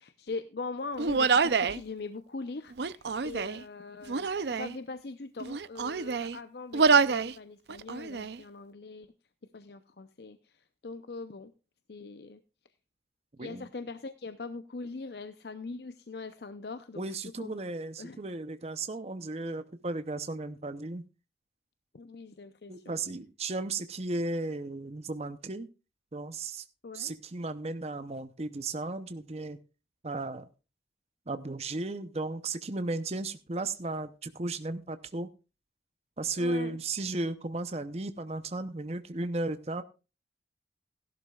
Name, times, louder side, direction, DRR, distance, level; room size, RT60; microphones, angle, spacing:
voice 1, 0.0-9.1 9.5-11.5 11.9-12.4 13.4-17.6 18.0-18.2 21.9-23.0 26.8-27.1 36.4-36.8, left 3 dB, 65° left, 11 dB, 0.7 m, -41 dB
Human voice, 1.0-1.8 2.7-3.6 4.1-4.7 5.4-6.4 6.7-7.3 7.7-8.4, right 5 dB, 70° right, 0.6 m, -26 dB
voice 2, 17.0-21.0 22.7-25.7 26.1-26.6 26.9-29.6 30.0-30.5 31.3-35.3 36.2-39.8, right 2 dB, 35° right, 10 dB, 0.7 m, -35 dB
16.5 x 12.0 x 2.4 m, 0.31 s
head